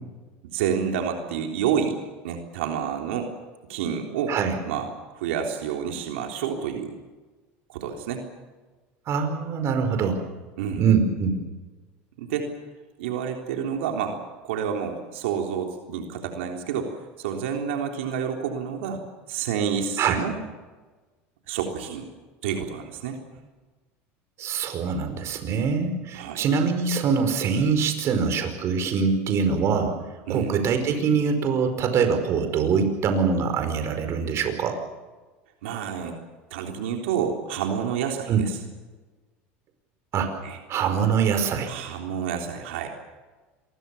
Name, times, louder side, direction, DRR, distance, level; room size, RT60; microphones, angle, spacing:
voice 1, 0.4-2.0 2.2-3.3 3.7-4.3 4.7-7.0 7.7-8.2 10.6-10.9 12.2-12.5 13.0-14.2 14.4-19.0 19.3-20.4 21.5-22.1 22.4-23.2 26.1-26.4 30.3-30.5 35.6-36.2 36.5-38.5 40.4-40.6 41.7-42.9, right 7 dB, 90° right, 3 dB, 3.6 m, -29 dB
voice 2, 9.1-10.2 10.8-11.4 20.0-20.2 24.4-29.9 30.3-34.8 38.3-38.4 40.1-40.3 40.7-41.7, right 6 dB, 45° right, 7 dB, 5.0 m, -23 dB
27.0 x 21.5 x 7.1 m, 1.3 s
supercardioid pair, 110°, 6 cm